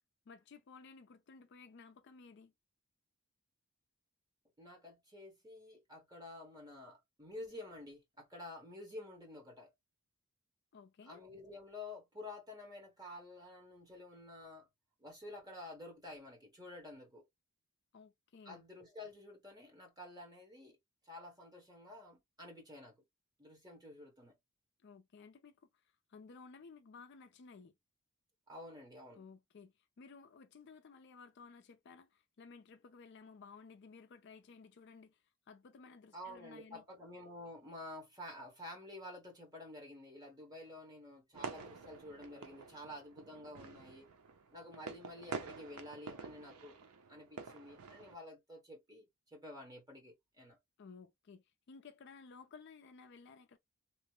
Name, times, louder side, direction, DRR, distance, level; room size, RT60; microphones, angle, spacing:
voice 1, 0.3-2.5 10.7-11.2 17.9-18.6 24.8-25.8 26.1-27.7 29.1-36.8 50.8-53.6, left 4 dB, 50° left, 0.4 m, -56 dB
voice 2, 4.6-9.7 11.0-14.7 15.0-17.2 18.4-20.8 21.0-22.9 23.4-24.3 28.5-29.2 36.1-44.1 44.5-46.8 47.1-50.6, left 1 dB, 15° right, 1.1 m, -50 dB
sound 1, 41.3-48.1, right 4 dB, 85° right, 0.5 m, -48 dB
2.9 x 2.0 x 3.0 m
head